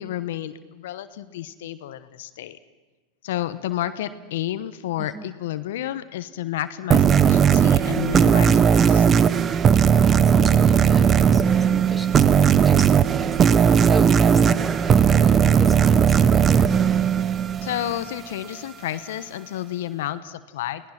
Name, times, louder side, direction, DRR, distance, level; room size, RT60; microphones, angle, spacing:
voice 1, 0.0-2.6 3.2-9.1 17.6-20.9, left 12 dB, 70° left, 12 dB, 1.0 m, -31 dB
sound 1, 6.9-18.1, right 7 dB, 30° right, 0.9 m, -17 dB
voice 2, 9.9-16.8, right 1 dB, 10° right, 7 dB, 2.5 m, -35 dB
29.0 x 19.0 x 5.9 m, 1.2 s
hypercardioid pair, 95°, 0 cm